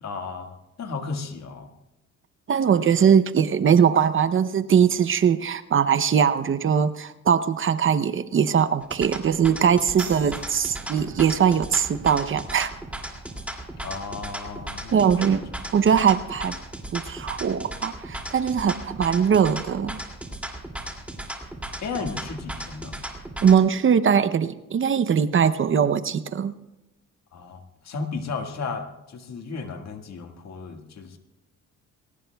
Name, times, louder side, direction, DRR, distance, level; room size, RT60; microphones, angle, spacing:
voice 1, 0.0-1.7 13.8-15.4 21.8-22.9 27.3-31.2, left 4 dB, 60° left, 4 dB, 1.8 m, -34 dB
voice 2, 2.5-12.7 14.9-15.5 15.7-16.6 16.9-20.0 23.4-26.5, right 7 dB, 40° right, 14 dB, 0.7 m, -21 dB
sound 1, 8.8-23.6, right 1 dB, 5° right, 2.5 m, -36 dB
sound 2, 10.0-17.1, right 8 dB, 75° right, 4.8 m, -48 dB
22.0 x 19.0 x 2.3 m, 0.97 s
cardioid pair, 90°, 30 cm